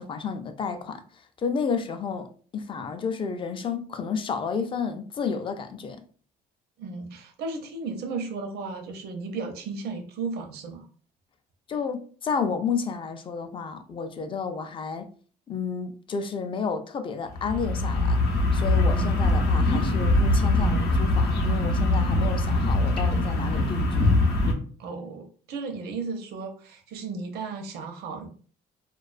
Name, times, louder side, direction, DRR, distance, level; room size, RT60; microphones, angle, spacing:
voice 1, 0.0-6.0 11.7-15.1 15.5-18.2 18.5-24.2, left 5 dB, 30° left, 0.4 m, -31 dB
voice 2, 6.8-10.9 24.8-28.3, right 4 dB, 70° right, 0.6 m, -34 dB
sound 1, 17.3-24.5, left 2 dB, 70° left, 0.7 m, -22 dB
2.3 x 2.2 x 2.4 m
cardioid pair, 110°, 17 cm